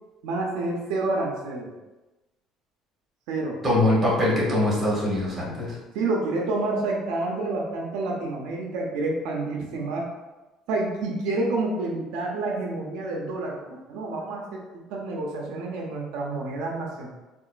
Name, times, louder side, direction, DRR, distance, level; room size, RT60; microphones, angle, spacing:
voice 1, 0.2-1.7 3.3-3.6 5.9-10.1 10.7-14.6 14.9-17.1, right 2 dB, 80° right, -1 dB, 0.6 m, -28 dB
voice 2, 3.6-5.8, left 1 dB, 15° right, -6 dB, 1.1 m, -22 dB
3.8 x 2.5 x 2.4 m, 1.1 s
cardioid pair, 170°, 0 cm